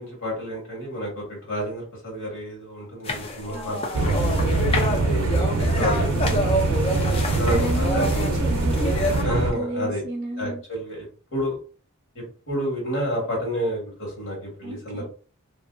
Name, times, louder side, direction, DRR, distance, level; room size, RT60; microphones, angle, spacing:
voice 1, 0.0-4.1 4.9-6.7 7.1-8.1 9.2-10.0 10.4-11.6 12.1-15.0, equal, 65° left, -2 dB, 1.4 m, -30 dB
sound 1, 3.0-9.2, left 2 dB, 25° left, 0.4 m, -28 dB
sound 2, 3.9-9.5, right 3 dB, 85° right, 0.4 m, -23 dB
voice 2, 4.4-4.8 7.5-10.6 14.6-15.0, right 2 dB, 35° right, -5 dB, 0.6 m, -33 dB
2.6 x 2.5 x 2.2 m, 0.40 s
head